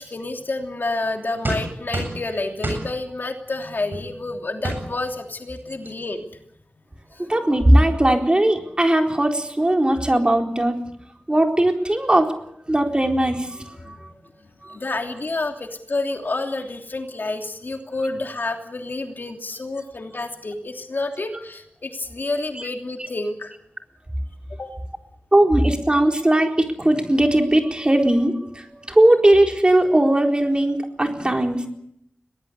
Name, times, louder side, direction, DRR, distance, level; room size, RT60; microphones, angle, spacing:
voice 1, 0.0-6.2 13.8-14.0 14.7-23.5 24.6-24.7, left 2 dB, 60° left, 4 dB, 3.0 m, -29 dB
sound 1, 1.4-2.2 2.6-2.9 3.9-4.1 4.6-4.8 5.6-5.7 5.8-6.1, right 1 dB, 55° right, 7.9 m, -27 dB
voice 2, 7.2-10.8 11.3-12.3 12.7-14.0 14.6-14.8 22.6-22.7 25.3-31.7, right 1 dB, 25° right, 3 dB, 4.2 m, -19 dB
22.5 x 19.0 x 8.2 m, 0.74 s
wide cardioid pair, 70°, 4 cm